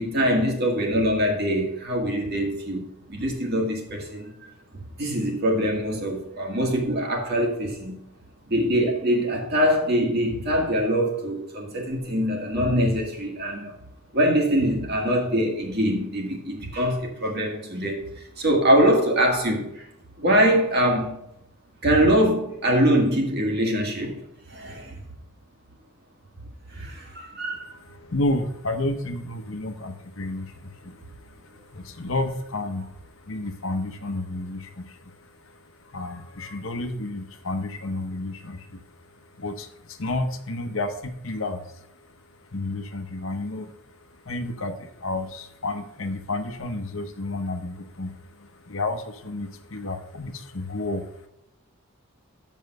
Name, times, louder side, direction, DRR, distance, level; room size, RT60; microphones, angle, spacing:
voice 1, 0.0-2.8 3.1-4.5 5.0-8.0 8.5-13.7 14.1-19.9 20.2-21.2 21.8-24.2 24.5-25.0 26.7-27.8, equal, 45° right, 2.0 m, -23 dB
voice 2, 27.8-32.9 33.2-38.8 39.4-41.8 42.5-43.7 44.2-51.3, left 2 dB, 65° left, 0.9 m, -31 dB
7.3 x 5.4 x 6.4 m
head